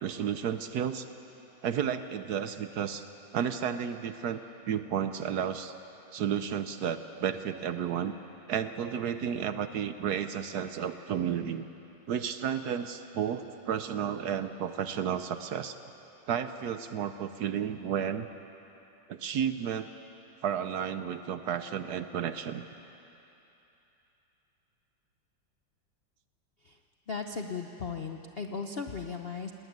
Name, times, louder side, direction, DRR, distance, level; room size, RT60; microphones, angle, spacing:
voice 1, 0.0-1.1 1.6-3.0 3.3-4.4 4.7-5.7 6.1-8.1 8.5-11.7 12.1-15.8 16.3-18.3 19.1-19.9 20.4-22.7, right 8 dB, 65° right, 10 dB, 1.1 m, -32 dB
voice 2, 27.1-29.5, left 5 dB, 55° left, 4 dB, 0.6 m, -37 dB
19.0 x 19.0 x 9.3 m, 3.0 s
omnidirectional pair, 2.1 m